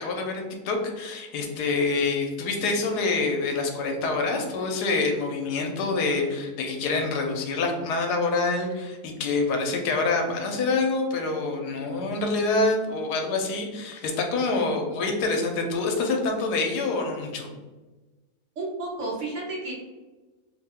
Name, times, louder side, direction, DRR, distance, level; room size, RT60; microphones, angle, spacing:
voice 1, 0.0-17.5, left 3 dB, 80° left, 3 dB, 1.1 m, -26 dB
voice 2, 18.6-19.7, right 2 dB, 60° right, -3 dB, 0.9 m, -31 dB
2.9 x 2.1 x 3.5 m, 1.2 s
omnidirectional pair, 1.7 m